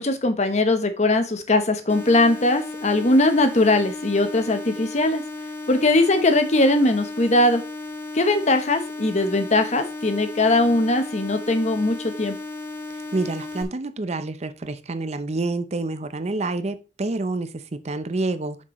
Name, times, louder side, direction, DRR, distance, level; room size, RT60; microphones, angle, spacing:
voice 1, 0.0-5.2 5.7-7.6 8.1-12.4, left 2 dB, 40° left, 1.0 m, -20 dB
sound 1, 1.9-13.6, left 3 dB, 15° left, 1.1 m, -35 dB
voice 2, 13.1-18.6, right 2 dB, 40° right, 0.6 m, -28 dB
7.6 x 6.3 x 3.1 m
head